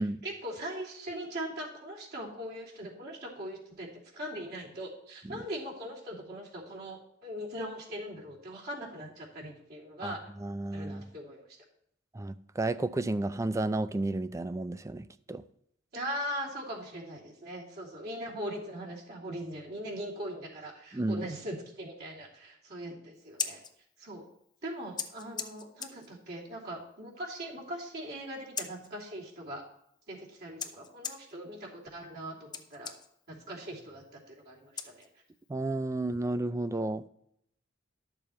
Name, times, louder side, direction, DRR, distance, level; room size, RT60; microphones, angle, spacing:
voice 1, 0.0-3.9 4.1-10.2 10.7-11.4 15.9-23.6 24.0-24.2 24.6-29.6 30.1-32.9 33.3-35.1, equal, 55° right, 3.1 m, -40 dB
voice 2, 10.0-11.1 12.1-15.4 20.9-21.3 35.5-37.1, right 2 dB, 15° right, 0.4 m, -32 dB
Scissors, 23.1-35.5, left 6 dB, 20° left, 0.7 m, -44 dB
12.0 x 6.9 x 4.3 m
head